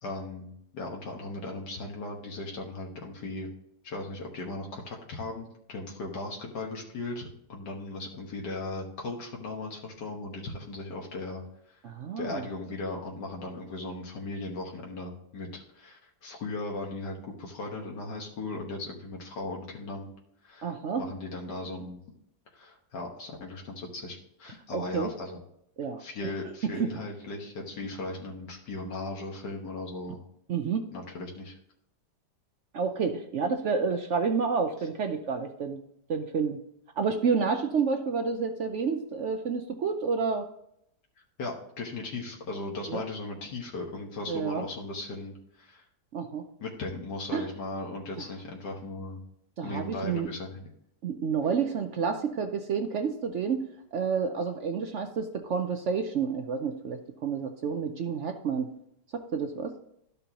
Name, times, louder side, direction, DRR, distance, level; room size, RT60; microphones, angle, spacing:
voice 1, 0.0-3.5 3.8-11.8 12.2-20.1 20.4-22.0 22.5-25.4 26.0-30.2 30.9-31.6 41.4-45.8 46.6-49.2 49.6-50.7, left 2 dB, 80° left, -1 dB, 1.9 m, -37 dB
voice 2, 11.8-12.5 20.6-21.1 24.7-25.1 25.8-26.3 26.7-26.9 30.5-30.8 32.7-35.8 36.1-36.6 36.9-40.5 42.9-43.0 44.3-44.6 46.1-46.5 47.3-47.5 49.6-50.3 51.0-53.6 53.9-58.7 59.1-59.7, right 5 dB, 60° right, 6 dB, 0.8 m, -29 dB
12.5 x 5.3 x 2.9 m, 0.74 s
omnidirectional pair, 1.8 m